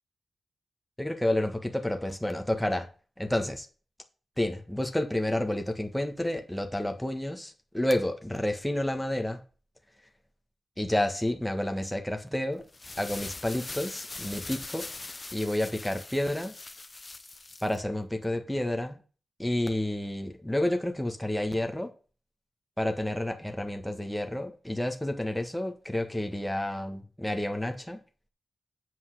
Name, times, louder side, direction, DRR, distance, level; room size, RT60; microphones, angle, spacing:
voice 1, 1.0-2.9 3.2-3.7 4.4-9.4 10.8-12.6 13.0-14.9 15.3-16.5 17.6-19.0 19.4-21.9 22.8-28.0, left 1 dB, 5° left, 1.4 m, -30 dB
sound 1, 12.6-17.8, left 3 dB, 30° left, 0.6 m, -42 dB
7.9 x 5.4 x 6.6 m
wide cardioid pair, 100°, 0 cm